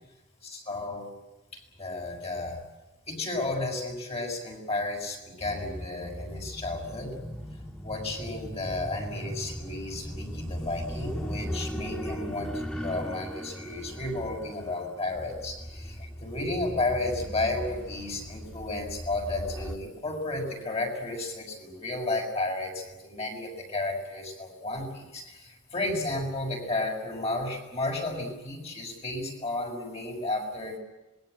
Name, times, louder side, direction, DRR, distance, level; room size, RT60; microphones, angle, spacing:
voice 1, 0.4-1.1 1.5-2.6 3.1-7.2 7.8-30.8, left 2 dB, 30° left, 1 dB, 6.2 m, -33 dB
sound 1, 5.4-19.8, equal, 5° left, 1.9 m, -38 dB
26.5 x 21.5 x 7.9 m, 1.1 s
head